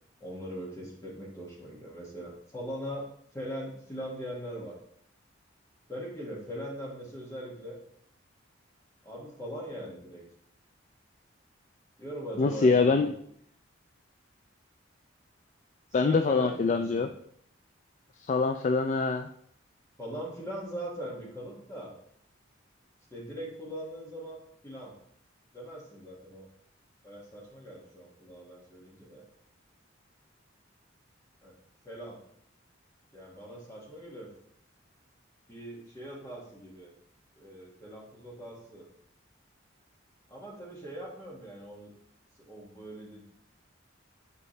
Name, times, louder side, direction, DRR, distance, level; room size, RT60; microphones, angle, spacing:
voice 1, 0.2-3.1 3.3-4.7 5.9-7.8 9.0-10.2 12.0-13.1 16.0-17.0 20.0-21.9 23.1-24.4 24.6-24.9 25.5-26.5 27.0-29.2 31.4-31.5 31.8-32.2 33.1-34.3 35.5-36.9 37.4-38.9 40.3-41.9 42.5-43.2, equal, 15° left, -3 dB, 1.9 m, -40 dB
voice 2, 12.4-13.1 15.9-17.1 18.3-19.3, left 4 dB, 40° left, 7 dB, 0.3 m, -24 dB
8.1 x 5.4 x 3.3 m, 0.67 s
head